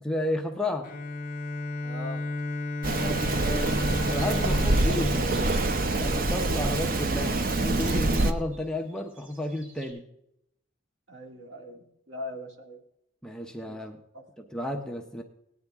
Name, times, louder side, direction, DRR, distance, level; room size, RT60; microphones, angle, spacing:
voice 1, 0.0-0.9 2.9-5.6 5.9-10.1 13.2-14.0 14.4-15.2, left 1 dB, 5° left, 2 dB, 0.7 m, -32 dB
Bowed string instrument, 0.8-6.5, left 2 dB, 40° left, 0.8 m, -33 dB
voice 2, 1.8-2.3 11.1-12.8 13.7-13.8 14.1-14.2, left 1 dB, 65° right, 2 dB, 2.0 m, -41 dB
Rain, 2.8-8.3, right 2 dB, 45° right, 0.7 m, -25 dB
sound 1, 4.2-6.3 6.8-9.9, right 3 dB, 90° right, 6.2 m, -49 dB
18.5 x 9.6 x 3.6 m, 0.79 s
head